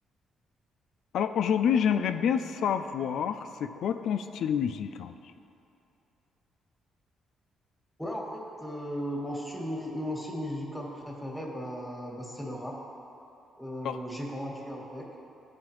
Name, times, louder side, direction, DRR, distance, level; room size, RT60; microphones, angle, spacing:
voice 1, 1.1-5.2 13.8-14.0, left 8 dB, 75° left, 9 dB, 0.3 m, -28 dB
voice 2, 8.0-12.8 13.6-15.2, equal, 5° left, -2 dB, 1.4 m, -36 dB
12.5 x 4.7 x 3.1 m, 2.8 s
cardioid pair, 90°, 0 cm